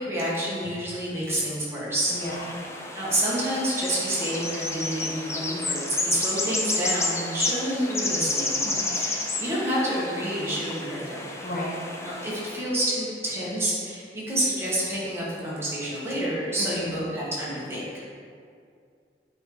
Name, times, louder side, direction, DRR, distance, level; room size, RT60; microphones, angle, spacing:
voice 1, 0.0-2.2 2.9-8.6 8.9-11.2 12.0-18.0, right 1 dB, 15° right, -7 dB, 1.6 m, -28 dB
voice 2, 2.1-2.6 8.6-9.1 11.4-11.8 16.6-17.0, left 1 dB, 50° left, -3 dB, 1.0 m, -34 dB
sound 1, 2.1-12.6, left 2 dB, 15° left, 0.5 m, -31 dB
8.0 x 4.5 x 3.9 m, 2.3 s
head